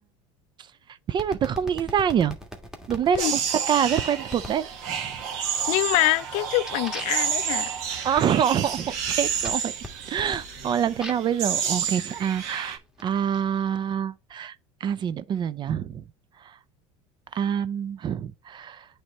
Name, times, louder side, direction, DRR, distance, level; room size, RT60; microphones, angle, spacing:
voice 1, 1.1-2.4 2.9-5.1 8.0-9.7 10.1-14.6 14.8-16.0 16.4-16.6 17.3-18.9, right 8 dB, 35° right, 0.4 m, -26 dB
sound 1, 1.2-3.2 4.3-4.6 5.1-5.6 6.0-11.4 12.2-13.4, left 1 dB, 5° right, 1.5 m, -41 dB
sound 2, 3.2-12.8, right 7 dB, 65° right, 1.6 m, -30 dB
voice 2, 5.7-7.7, left 20 dB, 60° left, 0.4 m, -25 dB
8.8 x 3.4 x 4.1 m
hypercardioid pair, 95°, 14 cm